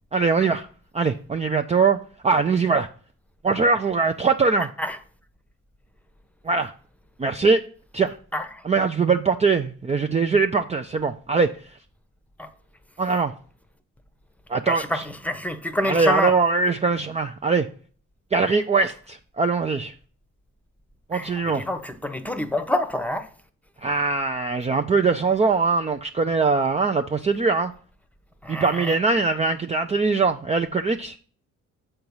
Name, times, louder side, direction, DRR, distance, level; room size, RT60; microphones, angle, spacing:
voice 1, 0.1-0.7 0.9-2.0 2.2-2.9 3.4-4.7 6.4-6.7 7.2-7.6 7.9-8.2 8.6-11.5 13.0-13.3 14.5-15.0 15.8-17.7 18.3-19.9 21.1-21.7 23.8-27.7 28.5-31.2, right 4 dB, 20° right, 0.5 m, -22 dB
voice 2, 8.3-8.6 12.4-12.5 14.7-16.3 21.1-23.3 28.4-29.0, left 1 dB, 5° left, 1.0 m, -27 dB
7.8 x 4.6 x 5.5 m
cardioid pair, 90°, 30 cm